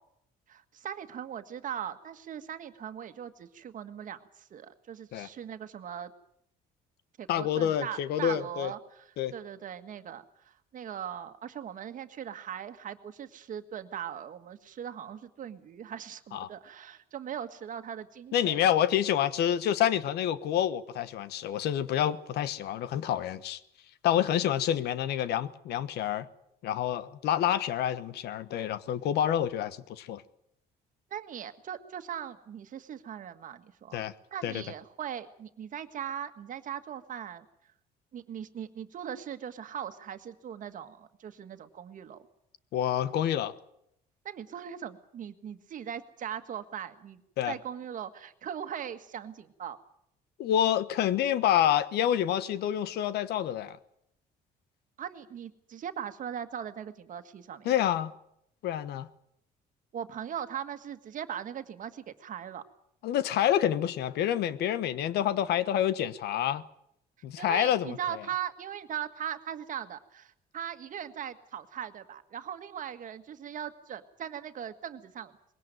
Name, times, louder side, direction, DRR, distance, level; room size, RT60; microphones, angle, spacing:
voice 1, 0.5-6.1 7.2-18.6 31.1-34.0 34.3-37.4 38.1-42.2 44.2-47.2 47.5-49.8 55.0-57.7 59.9-62.6 67.4-75.3, right 9 dB, 50° right, 9 dB, 1.7 m, -39 dB
voice 2, 7.3-8.7 9.2-9.3 16.3-16.5 18.3-23.6 24.0-26.3 26.6-30.2 33.9-34.1 34.4-34.6 42.7-43.5 47.4-47.6 50.4-53.8 57.6-58.1 58.6-59.1 63.0-66.6 67.2-68.2, left 10 dB, 75° left, 15 dB, 1.2 m, -28 dB
21.0 x 17.5 x 9.1 m, 0.76 s
cardioid pair, 110°, 17 cm